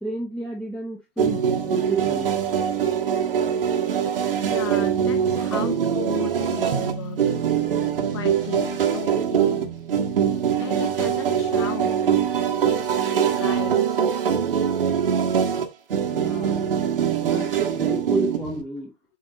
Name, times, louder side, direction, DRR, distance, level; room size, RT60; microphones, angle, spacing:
voice 1, 0.0-2.3 16.1-16.6 17.2-18.9, right 1 dB, ahead, 1.0 m, -31 dB
sound 1, 1.2-18.6, right 8 dB, 60° right, 1.5 m, -23 dB
voice 2, 4.5-7.4 8.1-9.8 10.6-12.0 12.6-12.8 13.4-14.0, left 10 dB, 25° left, 0.4 m, -35 dB
Drum, 6.7-8.9, right 6 dB, 30° right, 1.1 m, -36 dB
8.2 x 4.5 x 3.0 m
figure-of-eight pair, 115°, 32 cm